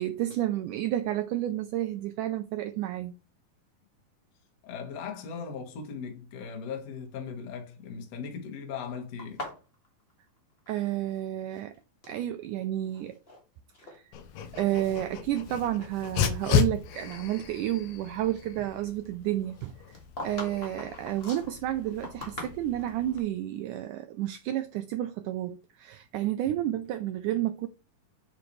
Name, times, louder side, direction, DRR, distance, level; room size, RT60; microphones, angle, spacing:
voice 1, 0.0-3.1 10.7-11.8 12.1-13.2 13.8-14.0 14.5-20.0 20.2-27.7, right 13 dB, 90° right, 1.8 m, -31 dB
voice 2, 4.6-9.4, left 6 dB, 55° left, 2.3 m, -38 dB
sound 1, 9.2-11.2 11.4-12.2 12.8-13.4 13.7-14.0 14.6-14.7 15.3-16.8 17.1-17.2 19.5-23.0, left 1 dB, 25° left, 1.4 m, -43 dB
Dog, 14.1-23.2, left 9 dB, 75° left, 1.7 m, -34 dB
8.2 x 4.9 x 3.2 m
omnidirectional pair, 4.2 m